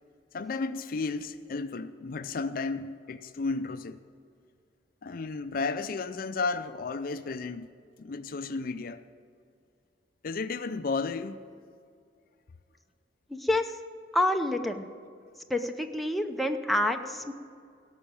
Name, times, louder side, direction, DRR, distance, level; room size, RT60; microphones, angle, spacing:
voice 1, 0.3-4.0 5.0-7.7 8.0-9.0 10.2-11.4, left 4 dB, 50° left, 0.5 m, -33 dB
voice 2, 13.3-13.7 14.1-14.9 15.5-17.3, left 1 dB, ahead, 0.6 m, -28 dB
17.0 x 6.3 x 8.7 m
head